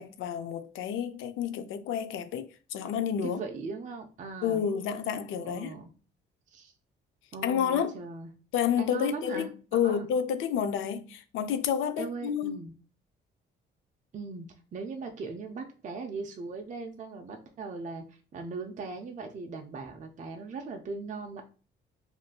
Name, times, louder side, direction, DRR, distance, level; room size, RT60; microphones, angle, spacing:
voice 1, 0.0-3.4 4.4-5.7 7.4-8.0 8.5-12.6, left 8 dB, 80° left, 0.4 m, -30 dB
voice 2, 3.2-4.6 5.4-5.9 6.5-6.7 7.3-8.3 8.8-10.1 12.0-12.7 14.1-21.4, right 4 dB, 40° right, 0.5 m, -39 dB
3.6 x 2.5 x 2.3 m
cardioid pair, 90°, 20 cm